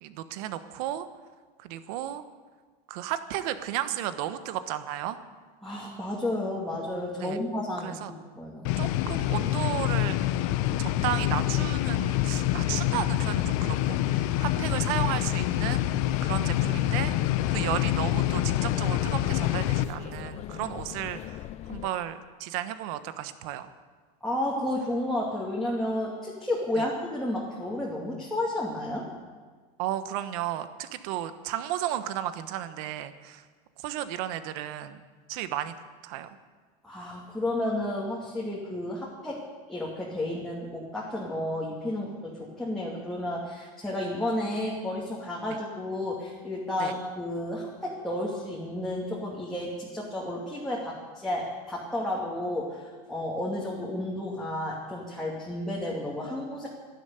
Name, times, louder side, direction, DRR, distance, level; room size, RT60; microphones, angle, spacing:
voice 1, 0.0-1.1 1.6-2.2 2.9-5.2 7.2-7.4 7.8-8.1 8.8-10.2 10.8-15.9 16.2-17.2 17.5-21.4 21.7-23.7 26.8-26.9 29.8-33.4 33.8-35.0 35.3-35.7 36.0-36.4 45.5-45.6 46.8-46.9, right 12 dB, 65° right, 11 dB, 1.2 m, -33 dB
voice 2, 5.6-8.8 24.2-29.1 36.8-56.7, left 1 dB, ahead, -6 dB, 2.4 m, -32 dB
sound 1, 8.6-19.8, left 14 dB, 65° left, 0.8 m, -26 dB
sound 2, 10.6-21.9, left 12 dB, 35° left, 0.5 m, -39 dB
12.5 x 11.5 x 9.3 m, 1.4 s
supercardioid pair, 135°, 20 cm